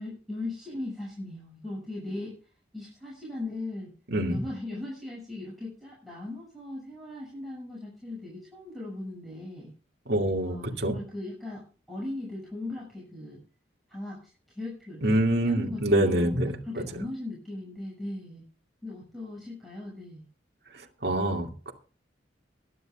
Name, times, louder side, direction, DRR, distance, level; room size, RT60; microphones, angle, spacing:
voice 1, 0.0-2.3 2.7-3.9 4.3-9.7 10.3-11.6 11.9-13.4 13.9-14.2 14.5-16.4 16.6-18.4 18.8-20.3, left 2 dB, ahead, -6 dB, 6.6 m, -38 dB
voice 2, 4.1-4.4 10.1-10.9 15.0-16.8 20.7-21.7, right 1 dB, 60° right, 1 dB, 2.4 m, -26 dB
23.5 x 10.0 x 2.4 m, 0.38 s
head